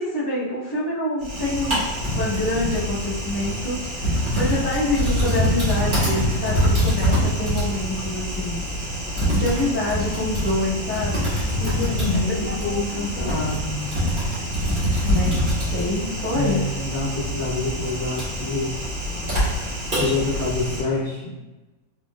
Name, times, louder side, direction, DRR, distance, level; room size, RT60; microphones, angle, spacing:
voice 1, 0.0-8.6 9.3-11.3 12.6-13.3 15.0-15.4 15.7-16.7, left 1 dB, 15° left, -11 dB, 0.9 m, -26 dB
Typing, 1.2-20.8, equal, 30° right, 1.4 m, -25 dB
voice 2, 11.6-14.0 16.3-18.8 20.0-21.4, left 3 dB, 60° left, -8 dB, 1.2 m, -27 dB
3.7 x 3.4 x 2.4 m, 1.1 s
omnidirectional pair, 2.1 m